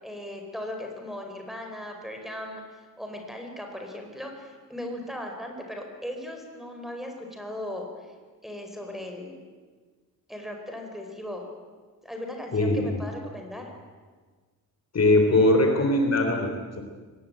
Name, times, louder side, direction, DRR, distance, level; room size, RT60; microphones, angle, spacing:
voice 1, 0.0-8.1 8.4-9.4 10.3-11.5 12.0-13.7, left 1 dB, ahead, 2 dB, 4.7 m, -38 dB
voice 2, 12.5-13.0 14.9-16.8, left 1 dB, 45° left, 4 dB, 3.6 m, -21 dB
22.5 x 20.0 x 8.9 m, 1.4 s
wide cardioid pair, 125°, 36 cm